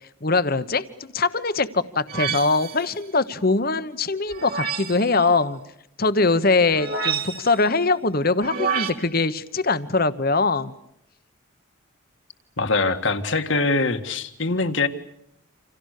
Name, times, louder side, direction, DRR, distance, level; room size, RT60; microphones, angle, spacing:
voice 1, 0.2-0.8 1.1-5.6 6.0-10.7, left 3 dB, 45° left, 13 dB, 1.2 m, -22 dB
sound 1, 2.1-2.9 4.3-5.1 6.7-7.6 8.4-8.9, right 6 dB, 45° right, 2.3 m, -28 dB
voice 2, 12.6-14.9, left 3 dB, 60° left, 9 dB, 1.8 m, -23 dB
29.0 x 27.5 x 6.7 m, 0.75 s
head